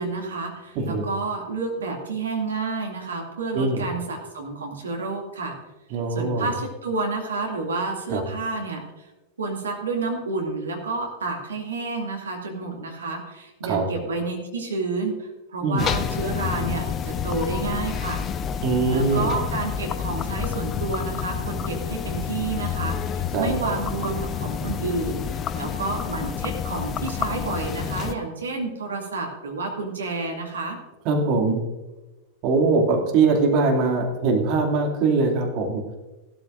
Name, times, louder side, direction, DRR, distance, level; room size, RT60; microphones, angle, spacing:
voice 1, 0.0-5.6 6.1-8.8 9.4-18.2 18.9-25.2 25.5-30.8, right 3 dB, 70° right, 1 dB, 2.4 m, -30 dB
voice 2, 3.5-3.9 5.9-6.5 8.1-8.2 13.6-13.8 15.6-15.9 18.6-19.4 23.3-23.8 31.0-31.6 32.4-35.8, right 3 dB, 40° right, 0 dB, 2.6 m, -22 dB
sound 1, 15.8-28.1, left 8 dB, 30° left, 0.6 m, -29 dB
16.0 x 13.0 x 2.6 m, 1.1 s
figure-of-eight pair, 90°, 0 cm